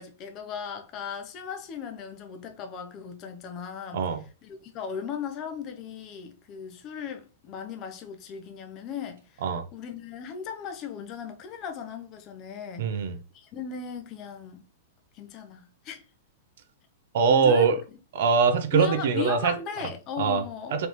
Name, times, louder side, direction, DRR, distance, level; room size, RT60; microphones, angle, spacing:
voice 1, 0.0-4.1 4.4-12.9 13.3-14.6 15.1-16.0 17.3-18.0 18.7-20.8, left 7 dB, 25° left, 0.5 m, -37 dB
voice 2, 12.8-13.2 17.1-17.8 18.1-19.5 20.2-20.4 20.7-20.9, right 5 dB, 55° right, 0.6 m, -22 dB
4.0 x 3.3 x 3.0 m
supercardioid pair, 170°, 0 cm